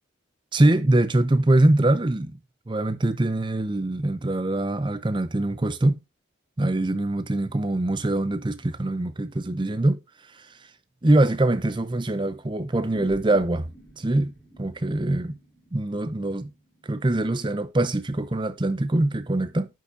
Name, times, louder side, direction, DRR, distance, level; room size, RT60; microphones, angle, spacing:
voice 1, 0.5-2.4 2.7-6.0 6.6-10.0 10.4-10.5 11.0-13.7 14.0-14.3 14.6-15.4 15.7-16.5 16.8-19.7, right 1 dB, 25° right, 0.5 m, -23 dB
sound 1, 12.7-17.5, equal, ahead, 2.5 m, -47 dB
10.5 x 5.6 x 2.7 m
head